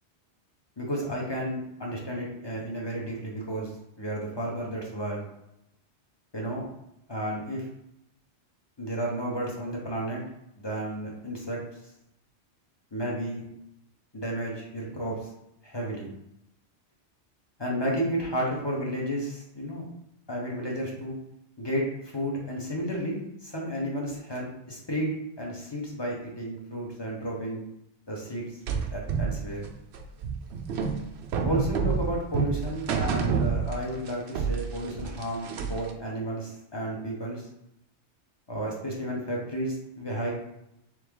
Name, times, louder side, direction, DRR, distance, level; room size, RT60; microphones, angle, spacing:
voice 1, 0.8-3.7 4.0-5.2 6.3-6.7 7.1-7.6 8.8-10.2 10.6-11.6 12.9-13.4 14.1-15.2 15.6-16.1 17.6-19.9 20.3-21.2 21.6-27.6 28.1-28.4 28.9-29.6 31.4-37.5 38.5-40.3, right 1 dB, 25° left, -3 dB, 0.8 m, -32 dB
sound 1, 28.7-34.1 34.4-35.9, right 6 dB, 70° right, 0.8 m, -28 dB
3.5 x 3.2 x 3.6 m, 0.83 s
omnidirectional pair, 1.2 m